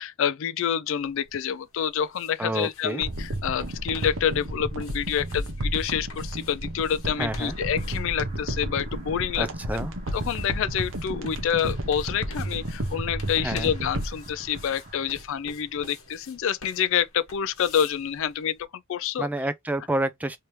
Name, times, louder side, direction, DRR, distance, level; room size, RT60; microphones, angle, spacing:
voice 1, 0.0-9.5 10.1-19.3, left 9 dB, 65° left, 0.3 m, -27 dB
sound 1, 1.0-18.6, left 3 dB, 85° left, 1.3 m, -50 dB
voice 2, 2.4-3.0 7.2-7.6 9.4-9.9 13.4-13.7 19.2-20.4, right 1 dB, 5° right, 0.4 m, -29 dB
sound 2, 3.0-15.5 15.8-15.9, right 1 dB, 65° right, 0.9 m, -32 dB
sound 3, 7.2-15.1, right 2 dB, 35° right, 1.5 m, -53 dB
3.3 x 2.8 x 3.1 m
head